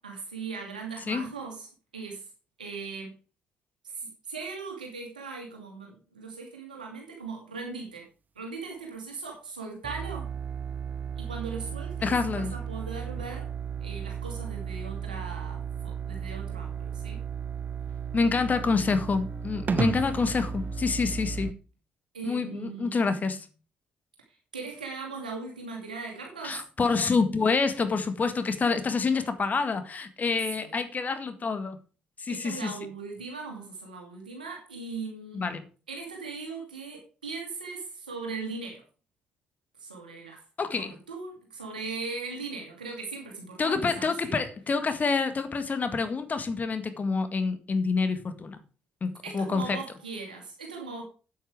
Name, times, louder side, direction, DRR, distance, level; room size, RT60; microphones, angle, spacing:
voice 1, 0.0-2.3 2.6-3.1 3.9-8.0 8.4-10.3 11.2-13.5 13.8-17.2 22.1-23.0 24.5-26.6 30.5-30.8 32.3-35.4 35.9-38.8 39.8-40.4 40.8-44.4 49.2-51.0, right 4 dB, 90° right, 2.4 m, -39 dB
sound 1, 9.8-21.5, right 6 dB, 40° right, 0.8 m, -34 dB
voice 2, 12.0-12.5 18.1-21.6 22.2-23.4 26.4-31.8 32.2-32.7 35.3-35.6 40.6-40.9 43.6-48.6 49.0-49.8, left 4 dB, 40° left, 1.8 m, -27 dB
8.6 x 8.5 x 4.9 m
hypercardioid pair, 45°, 4 cm